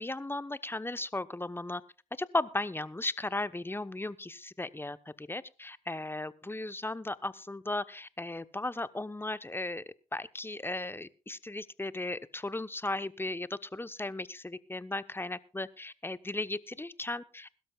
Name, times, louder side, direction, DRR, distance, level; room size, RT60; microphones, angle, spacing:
voice 1, 0.0-1.8 2.2-9.8 10.1-17.5, left 2 dB, 15° left, 15 dB, 0.9 m, -36 dB
21.5 x 12.5 x 2.3 m, 0.34 s
hypercardioid pair, 45°, 15 cm